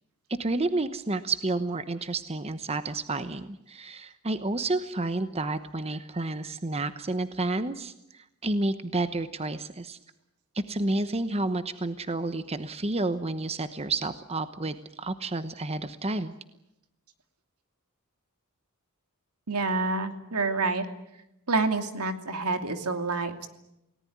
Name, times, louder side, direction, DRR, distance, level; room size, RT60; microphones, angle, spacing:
voice 1, 0.4-10.0 10.5-16.3, right 2 dB, 25° right, 11 dB, 1.0 m, -30 dB
voice 2, 19.5-20.9 21.5-23.5, right 3 dB, 85° right, 7 dB, 2.7 m, -28 dB
29.5 x 18.5 x 9.6 m, 0.88 s
head